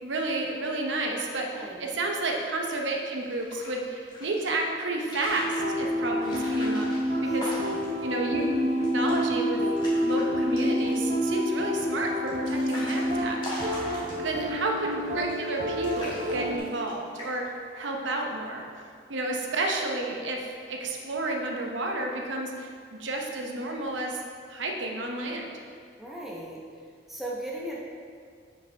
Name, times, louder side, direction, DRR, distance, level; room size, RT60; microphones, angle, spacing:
voice 1, 0.0-6.9 7.3-7.5 8.0-9.6 10.0-13.9 14.2-18.7 19.1-22.7 23.0-24.2 24.5-25.5, right 2 dB, 80° right, 1 dB, 0.8 m, -31 dB
voice 2, 1.4-1.9 7.2-7.8 14.0-14.2 26.0-26.6 27.1-27.8, right 1 dB, ahead, -6 dB, 0.8 m, -38 dB
sound 1, 3.2-4.5 4.9-5.6 6.2-8.0 8.4-8.5 8.7-9.2 9.6-10.2 10.6-11.1 11.8-14.5 15.1-15.6 15.8-16.9 17.2-17.6, left 1 dB, 25° left, 1.4 m, -40 dB
sound 2, 5.2-16.6, equal, 35° right, 0.7 m, -28 dB
7.5 x 5.4 x 3.4 m, 2.1 s
head